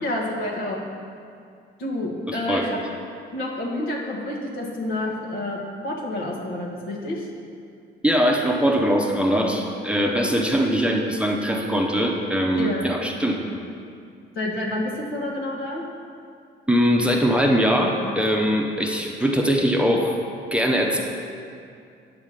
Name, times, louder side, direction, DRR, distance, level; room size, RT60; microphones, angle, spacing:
voice 1, 0.0-0.8 1.8-2.8 3.3-7.3 12.5-12.9 14.3-15.8, left 1 dB, 75° left, -3 dB, 1.4 m, -28 dB
voice 2, 2.3-2.7 8.0-13.4 16.7-20.1 20.5-21.0, equal, 5° right, 0 dB, 0.8 m, -21 dB
8.2 x 3.7 x 6.5 m, 2.4 s
cardioid pair, 90°, 20 cm